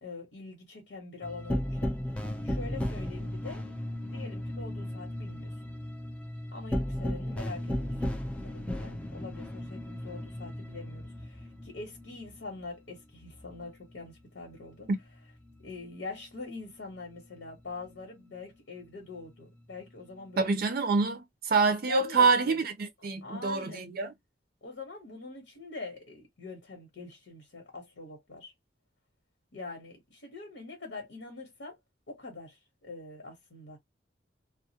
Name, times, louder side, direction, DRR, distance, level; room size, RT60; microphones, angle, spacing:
voice 1, 0.0-1.9 2.4-3.7 4.0-5.5 6.5-7.9 8.4-14.9 15.6-20.5 21.9-22.6 23.2-23.9 24.6-28.5 29.5-31.8 32.1-33.8, left 3 dB, 80° left, 1.0 m, -44 dB
sound 1, 1.2-14.2 14.5-16.4 16.7-18.4 18.9-20.7, left 1 dB, 5° left, 0.4 m, -37 dB
voice 2, 20.4-24.1, right 4 dB, 55° right, 0.5 m, -26 dB
2.3 x 2.1 x 2.7 m
head